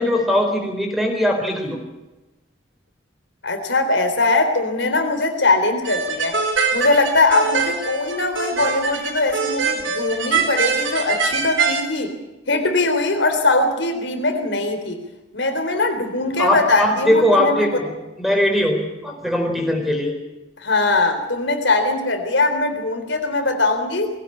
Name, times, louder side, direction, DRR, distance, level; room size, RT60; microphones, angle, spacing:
voice 1, 0.0-1.8 16.4-20.2, left 1 dB, ahead, 3 dB, 4.1 m, -20 dB
voice 2, 3.4-6.4 6.7-12.1 12.5-15.0 15.3-17.8 20.6-24.2, left 2 dB, 75° left, 6 dB, 3.7 m, -21 dB
sound 1, 5.8-11.8, right 5 dB, 90° right, 4.0 m, -23 dB
21.5 x 17.0 x 8.6 m, 1.0 s
head